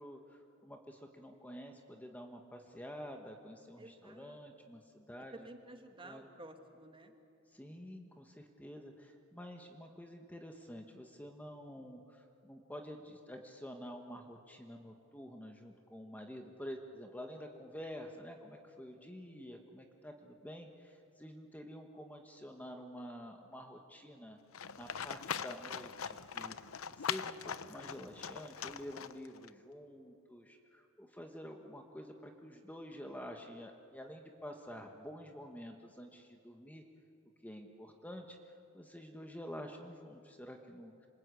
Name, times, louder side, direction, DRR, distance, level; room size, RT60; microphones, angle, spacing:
voice 1, 0.0-5.3 6.0-6.3 7.5-24.4 24.7-26.6 26.9-36.8 37.4-41.1, equal, 10° left, 3 dB, 1.4 m, -49 dB
voice 2, 3.8-4.4 5.3-7.1, right 2 dB, 25° right, 5 dB, 2.1 m, -52 dB
Livestock farm animals working animals, 24.5-29.5, left 7 dB, 75° left, 0.8 m, -41 dB
27.0 x 26.0 x 8.3 m, 2.8 s
head